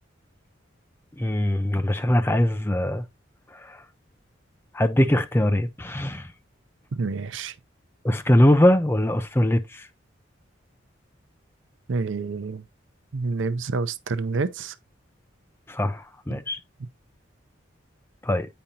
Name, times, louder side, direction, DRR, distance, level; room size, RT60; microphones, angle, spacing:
voice 1, 1.2-3.0 3.5-3.8 4.7-6.3 8.0-9.9 15.7-16.6 18.2-18.5, left 1 dB, 10° left, 0.4 m, -22 dB
voice 2, 6.9-7.5 11.9-12.7 13.1-14.7 16.3-16.4 16.8-16.9, right 4 dB, 80° right, 0.5 m, -28 dB
8.6 x 5.2 x 2.8 m
head